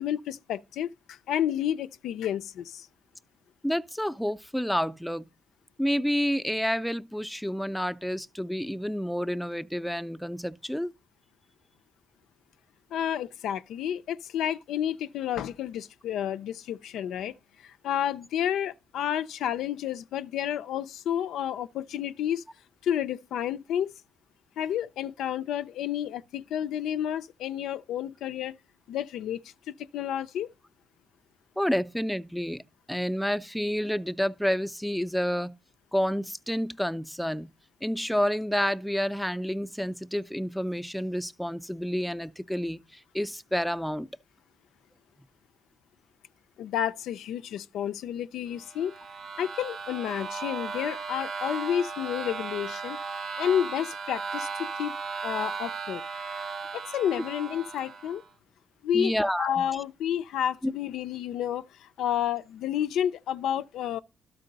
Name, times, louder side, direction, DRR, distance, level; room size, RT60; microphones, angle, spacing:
voice 1, 0.0-2.9 12.9-17.4 17.6-22.4 22.8-23.9 24.6-28.6 28.9-29.4 29.9-30.5 46.6-48.9 49.4-53.0 53.4-55.0 55.2-56.0 56.7-58.2 58.8-64.0, left 10 dB, 80° left, 0.3 m, -30 dB
voice 2, 3.6-5.3 5.8-10.9 31.6-35.6 35.9-37.5 37.8-44.1 58.9-59.6 60.6-60.7, equal, ahead, 0.4 m, -29 dB
sound 1, 48.6-58.3, right 5 dB, 50° right, 0.7 m, -36 dB
12.5 x 4.5 x 3.9 m
cardioid pair, 90°, 0 cm